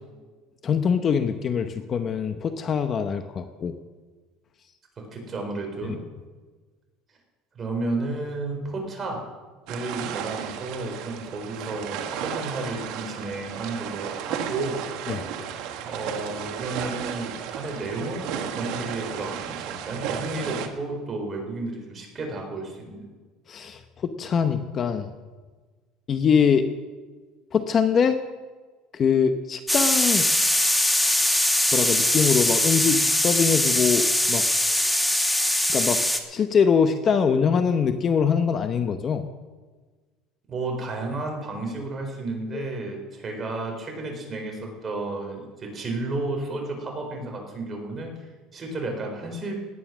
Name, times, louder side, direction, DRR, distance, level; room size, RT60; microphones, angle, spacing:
voice 1, 0.6-3.7 15.1-15.2 23.5-25.1 26.1-26.7 27.5-28.2 28.9-30.3 31.7-34.4 35.7-36.0 36.3-39.2 42.5-42.6, left 6 dB, 35° left, 8 dB, 0.9 m, -23 dB
voice 2, 5.0-6.0 7.5-9.2 9.7-14.8 15.8-23.1 40.5-48.2 48.5-49.6, right 2 dB, 25° right, 2 dB, 4.3 m, -32 dB
sound 1, 9.7-20.7, right 8 dB, 70° right, 1.5 m, -33 dB
sound 2, 29.7-36.2, left 1 dB, 5° left, 1.3 m, -22 dB
18.0 x 9.6 x 6.2 m, 1.4 s
cardioid pair, 130°, 0 cm